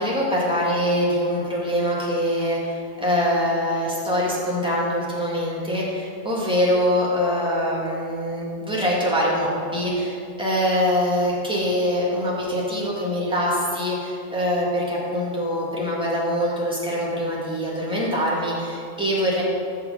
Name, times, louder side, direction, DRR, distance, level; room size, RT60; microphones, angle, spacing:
voice 1, 0.0-19.4, equal, 5° right, -6 dB, 1.6 m, -24 dB
7.0 x 6.2 x 5.0 m, 2.4 s
omnidirectional pair, 1.3 m